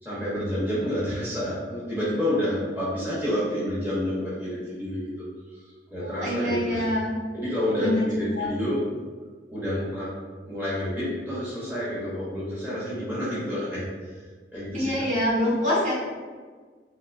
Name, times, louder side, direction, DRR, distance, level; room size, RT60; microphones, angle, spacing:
voice 1, 0.0-6.9 7.3-8.9 9.5-10.1 10.4-14.2 14.5-15.1, equal, 10° right, -10 dB, 0.9 m, -29 dB
voice 2, 6.0-7.2 7.8-8.1 8.3-8.5 14.7-15.9, left 1 dB, 45° right, -8 dB, 1.3 m, -25 dB
3.5 x 2.7 x 2.5 m, 1.5 s
head